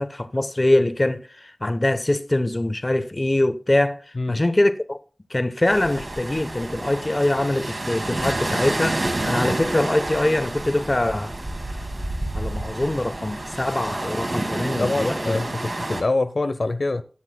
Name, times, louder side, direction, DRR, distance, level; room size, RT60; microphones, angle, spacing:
voice 1, 0.0-4.0 4.3-5.0 5.3-11.3 12.3-15.4, left 1 dB, 35° left, 0.9 m, -23 dB
sound 1, 5.6-16.0, right 2 dB, 55° right, 2.1 m, -29 dB
voice 2, 14.8-17.0, left 2 dB, 65° left, 0.7 m, -24 dB
19.5 x 8.2 x 2.2 m
wide cardioid pair, 65°, 0 cm